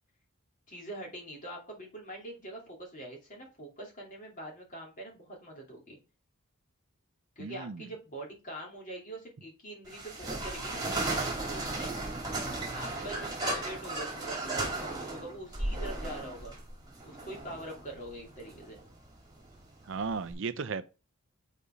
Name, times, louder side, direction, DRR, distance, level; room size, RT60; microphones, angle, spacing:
voice 1, 0.7-6.0 7.4-10.9 11.5-11.9 12.7-16.6 17.0-18.8, right 1 dB, 35° left, 2.5 m, -44 dB
voice 2, 7.4-7.9 19.9-20.9, right 5 dB, 55° right, 0.5 m, -35 dB
sound 1, 9.9-20.3, right 2 dB, 20° right, 2.1 m, -36 dB
7.0 x 4.2 x 5.0 m
head